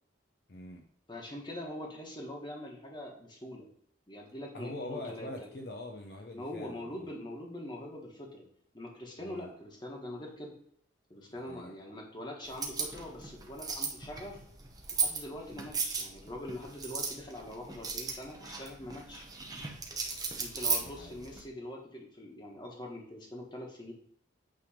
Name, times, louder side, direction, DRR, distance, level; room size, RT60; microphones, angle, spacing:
voice 1, 0.5-0.8 4.5-7.0 9.2-9.5 11.3-11.7 20.8-21.2, left 1 dB, 55° left, 2 dB, 0.7 m, -43 dB
voice 2, 1.1-3.7 4.1-5.5 6.3-8.5 8.7-10.5 11.1-14.4 14.9-19.3 20.4-23.9, left 1 dB, 25° left, -1 dB, 1.5 m, -43 dB
sound 1, 12.4-21.4, right 5 dB, 20° right, 0.9 m, -37 dB
8.8 x 3.5 x 5.0 m, 0.68 s
head